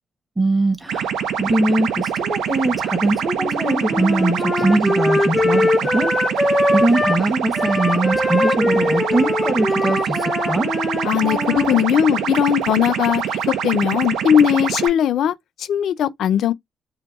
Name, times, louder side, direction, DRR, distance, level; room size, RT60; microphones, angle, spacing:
voice 1, 0.4-10.7, right 2 dB, 15° right, 0.9 m, -22 dB
sound 1, 0.9-14.9, right 8 dB, 80° right, 0.5 m, -24 dB
Wind instrument woodwind instrument, 3.4-7.2 7.5-11.8, left 2 dB, 10° left, 0.4 m, -22 dB
voice 2, 11.0-15.3 15.7-16.5, left 10 dB, 75° left, 0.5 m, -18 dB
2.8 x 2.2 x 3.5 m
cardioid pair, 90°, 0 cm